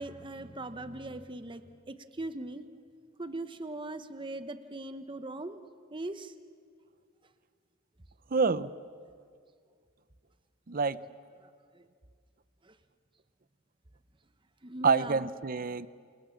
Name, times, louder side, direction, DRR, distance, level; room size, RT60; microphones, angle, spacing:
voice 1, 0.0-2.7 3.2-5.6 5.9-6.3 11.4-11.9 12.6-12.8 14.6-15.3, right 2 dB, 25° right, 10 dB, 0.9 m, -40 dB
voice 2, 8.3-8.7 10.7-11.0 14.8-15.9, right 4 dB, 45° right, 16 dB, 0.7 m, -27 dB
28.0 x 27.5 x 7.2 m, 2.1 s
head